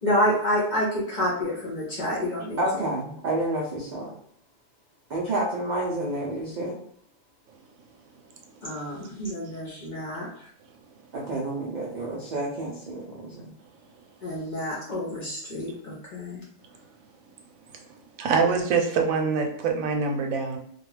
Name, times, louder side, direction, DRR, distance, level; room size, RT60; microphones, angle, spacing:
voice 1, 0.0-2.6 8.6-10.3 14.2-16.4, equal, 50° left, -4 dB, 0.6 m, -28 dB
voice 2, 2.6-4.1 5.1-6.8 11.1-13.5, right 1 dB, 70° right, -4 dB, 0.4 m, -29 dB
voice 3, 18.2-20.6, right 5 dB, 85° right, 3 dB, 1.0 m, -24 dB
2.3 x 2.3 x 3.1 m, 0.66 s
omnidirectional pair, 1.4 m